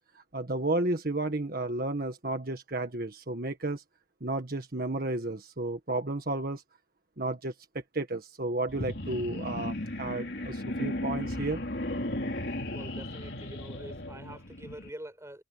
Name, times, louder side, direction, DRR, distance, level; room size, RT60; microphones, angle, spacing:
voice 1, 0.1-3.8 4.2-6.6 7.2-7.5 7.9-11.6, right 2 dB, 55° right, 1.7 m, -32 dB
sound 1, 8.7-14.9, left 1 dB, 70° left, 3.8 m, -35 dB
voice 2, 12.7-15.4, right 1 dB, 15° right, 5.6 m, -45 dB
head